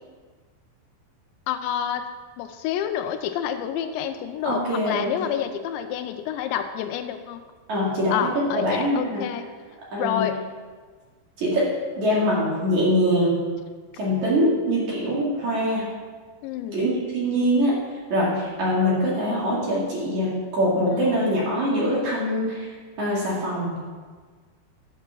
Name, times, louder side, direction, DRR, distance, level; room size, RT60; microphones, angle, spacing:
voice 1, 1.5-2.1 2.4-7.4 8.1-9.5 10.0-10.4 16.4-16.8 20.9-21.2, left 9 dB, 85° left, 8 dB, 2.9 m, -28 dB
voice 2, 4.4-5.3 7.7-9.2 9.9-10.3 11.4-11.7 12.0-13.4 13.9-15.9 16.7-17.7 18.1-22.7 23.0-23.9, equal, 45° right, -6 dB, 3.3 m, -23 dB
11.5 x 7.4 x 6.0 m, 1.5 s
omnidirectional pair, 5.2 m